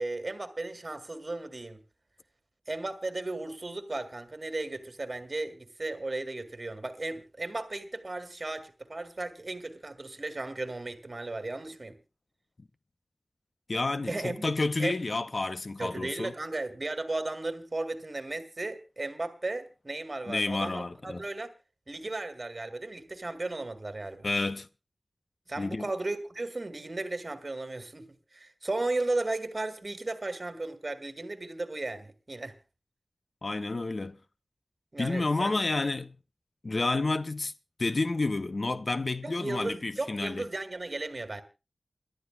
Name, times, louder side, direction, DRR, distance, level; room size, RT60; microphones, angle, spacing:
voice 1, 0.0-1.8 2.7-12.0 14.1-14.5 14.8-15.0 15.8-21.5 21.9-24.3 25.5-32.5 34.9-35.5 39.2-41.4, right 2 dB, 45° right, 2.0 m, -35 dB
voice 2, 13.7-16.3 20.3-21.2 24.2-24.7 25.6-25.9 33.4-34.2 35.0-36.1 36.6-37.5 37.8-40.5, left 3 dB, 55° left, 0.7 m, -30 dB
28.0 x 12.0 x 2.3 m
wide cardioid pair, 85°, 0 cm